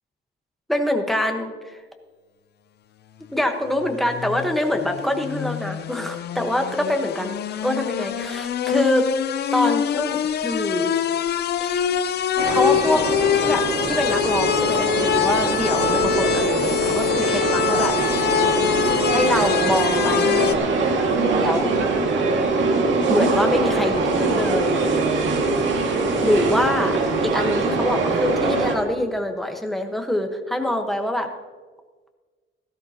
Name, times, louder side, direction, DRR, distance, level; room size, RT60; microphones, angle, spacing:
voice 1, 0.7-1.5 3.3-7.4 7.6-9.0 9.5-10.9 11.6-11.9 12.5-13.0 13.3-17.9 19.1-20.4 21.4-21.7 23.1-24.7 26.2-26.9 27.2-31.3, left 1 dB, ahead, 3 dB, 1.2 m, -24 dB
sound 1, 3.8-20.5, left 9 dB, 55° left, 0.6 m, -24 dB
sound 2, 12.4-28.8, right 3 dB, 65° right, 2.0 m, -22 dB
17.0 x 13.5 x 2.9 m, 1.4 s
cardioid pair, 155°, 21 cm